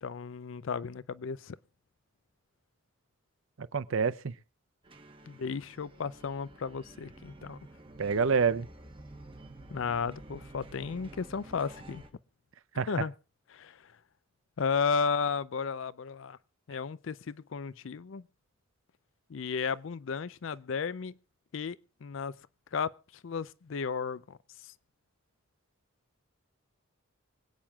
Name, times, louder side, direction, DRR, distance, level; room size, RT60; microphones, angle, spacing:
voice 1, 0.0-1.6 5.3-7.6 9.7-12.0 12.9-13.1 13.5-13.8 14.6-16.4 16.7-18.2 19.3-21.1 21.5-22.3 22.7-22.9 23.2-24.4, left 5 dB, 65° left, 0.5 m, -34 dB
voice 2, 3.6-4.3 8.0-8.7 12.8-12.9, right 5 dB, 75° right, 0.6 m, -27 dB
sound 1, 4.8-12.1, right 2 dB, 25° right, 1.2 m, -50 dB
25.5 x 8.9 x 2.3 m
head